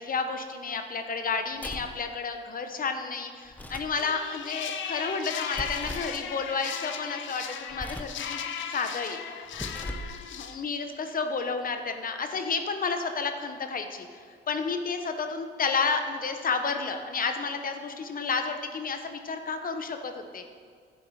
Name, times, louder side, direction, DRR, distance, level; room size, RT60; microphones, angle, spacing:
voice 1, 0.1-8.4 8.7-9.2 10.3-20.4, left 4 dB, 45° left, 7 dB, 1.0 m, -31 dB
sound 1, 1.5-2.0 3.5-4.0 5.5-6.2 7.7-8.2 9.5-10.2, equal, 10° left, 0.9 m, -39 dB
sound 2, 4.0-10.6, left 8 dB, 70° left, 0.8 m, -37 dB
11.0 x 8.3 x 4.8 m, 2.1 s
cardioid pair, 90°, 20 cm